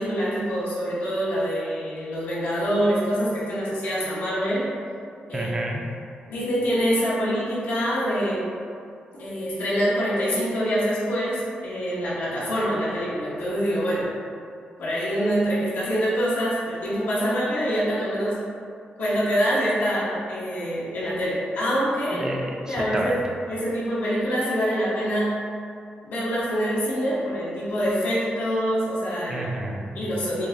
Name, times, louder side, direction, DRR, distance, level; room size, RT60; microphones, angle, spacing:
voice 1, 0.0-4.7 5.3-5.5 6.3-8.5 9.2-14.1 14.8-18.4 19.0-22.3 22.7-23.1 23.5-25.4 26.0-29.5 29.9-30.5, equal, 85° left, -9 dB, 1.0 m, -25 dB
voice 2, 5.3-5.8 22.2-23.1 29.3-30.0, right 1 dB, 20° right, 0 dB, 0.4 m, -29 dB
6.3 x 2.1 x 2.5 m, 2.4 s
wide cardioid pair, 135°, 3 cm